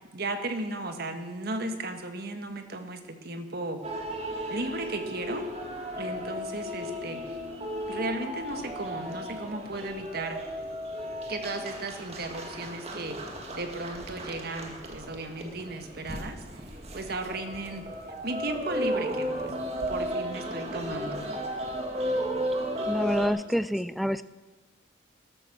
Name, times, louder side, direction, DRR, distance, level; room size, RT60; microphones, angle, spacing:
voice 1, 0.1-3.8 4.5-5.4 5.9-7.2 7.9-10.4 11.3-16.6 16.9-17.8 18.2-19.6 19.9-21.3, right 2 dB, 55° right, 6 dB, 1.6 m, -35 dB
sound 1, 3.8-23.3, equal, 35° right, 1.9 m, -34 dB
voice 2, 22.9-24.2, equal, ahead, 14 dB, 0.4 m, -27 dB
13.5 x 12.5 x 6.3 m, 1.2 s
head